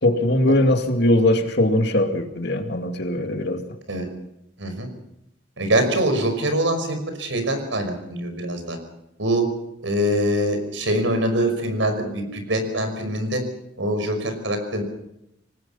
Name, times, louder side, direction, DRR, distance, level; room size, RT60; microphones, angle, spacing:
voice 1, 0.0-3.6, left 1 dB, 60° left, 5 dB, 2.4 m, -20 dB
voice 2, 5.6-8.8 9.2-9.5 9.8-13.4 13.8-14.8, right 1 dB, 85° right, 7 dB, 5.6 m, -24 dB
25.5 x 19.5 x 5.7 m, 0.82 s
head